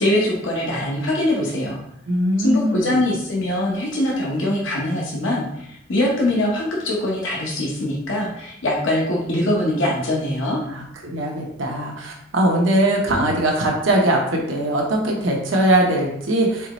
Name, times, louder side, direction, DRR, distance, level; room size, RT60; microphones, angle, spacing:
voice 1, 0.0-1.8 2.4-10.6, left 1 dB, 75° left, -3 dB, 0.9 m, -22 dB
voice 2, 2.1-3.1 10.7-16.7, right 1 dB, 80° right, 0 dB, 0.8 m, -21 dB
4.6 x 3.8 x 3.0 m, 0.75 s
head